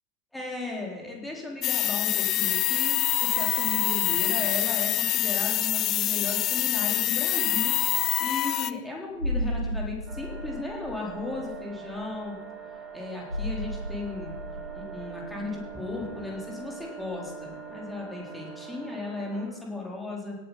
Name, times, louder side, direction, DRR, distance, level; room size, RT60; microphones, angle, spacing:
voice 1, 0.3-12.4 12.7-20.4, left 3 dB, 5° left, -3 dB, 3.9 m, -36 dB
sound 1, 1.6-8.7, left 14 dB, 35° left, 0.5 m, -25 dB
sound 2, 9.2-17.6 17.9-18.0, equal, 90° left, 0.9 m, -36 dB
sound 3, 10.1-19.5, right 6 dB, 25° right, 2.9 m, -43 dB
17.5 x 8.7 x 5.7 m, 1.2 s
figure-of-eight pair, 90°, 0 cm